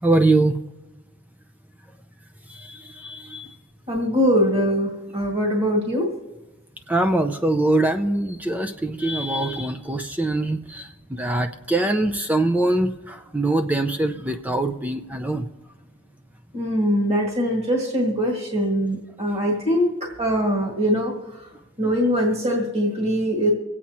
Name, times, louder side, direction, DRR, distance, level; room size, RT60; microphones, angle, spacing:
voice 1, 0.0-0.6 2.5-3.5 6.9-15.5, right 2 dB, 10° right, 7 dB, 0.5 m, -23 dB
voice 2, 3.9-6.1 16.5-21.1 21.8-23.5, equal, 35° right, -1 dB, 1.9 m, -22 dB
25.0 x 8.4 x 2.9 m, 1.1 s
head